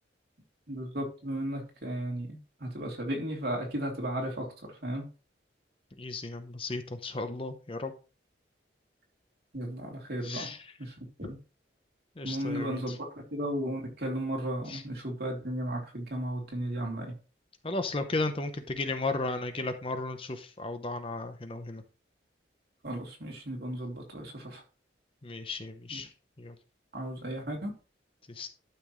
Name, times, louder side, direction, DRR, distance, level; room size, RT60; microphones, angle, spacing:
voice 1, 0.7-4.5 4.8-5.0 9.5-10.5 10.8-11.4 12.2-13.0 13.3-17.1 22.8-24.6 25.9-26.0 26.9-27.7, right 1 dB, 55° right, 0 dB, 3.2 m, -35 dB
voice 2, 6.0-7.9 10.2-10.6 12.2-13.0 14.7-14.8 17.6-21.8 25.2-26.1 26.4-26.5 28.4-28.5, left 2 dB, 30° left, 8 dB, 0.8 m, -34 dB
12.0 x 5.9 x 3.2 m, 0.34 s
head